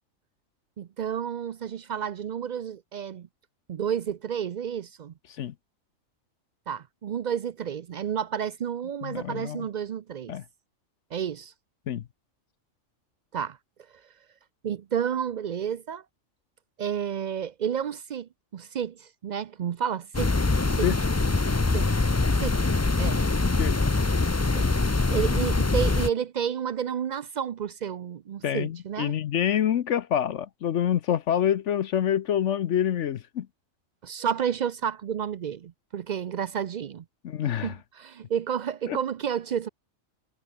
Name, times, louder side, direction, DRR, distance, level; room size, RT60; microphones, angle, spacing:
voice 1, 0.8-3.3 3.7-5.1 6.7-10.3 11.1-11.5 13.3-13.6 14.6-16.0 16.8-20.4 20.7-20.9 21.7-21.9 22.4-22.6 23.0-23.2 24.5-24.7 25.1-29.1 34.0-37.0 37.6-39.7, right 8 dB, 75° right, 0.4 m, -31 dB
voice 2, 9.0-9.7 10.3-10.4 11.9-12.0 20.8-21.0 23.6-23.8 28.4-33.5 37.2-37.7 38.9-39.0, left 10 dB, 65° left, 1.0 m, -26 dB
sound 1, 20.1-26.1, left 3 dB, 25° left, 0.3 m, -23 dB
omnidirectional pair, 1.4 m